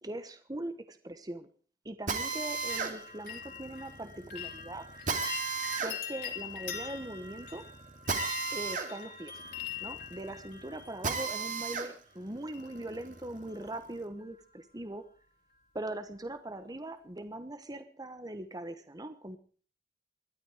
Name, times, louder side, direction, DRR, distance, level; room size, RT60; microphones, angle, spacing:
voice 1, 0.0-1.5 1.8-4.9 5.8-7.6 8.5-9.4 9.8-15.0 15.7-19.4, right 1 dB, 20° right, 10 dB, 1.2 m, -41 dB
Drill, 2.1-11.9 12.4-14.0, right 4 dB, 50° right, 2.5 m, -36 dB
sound 1, 2.7-11.6 12.5-13.1 13.3-13.9 14.2-14.3, left 7 dB, 65° left, 4.2 m, -43 dB
20.5 x 12.5 x 4.9 m, 0.42 s
head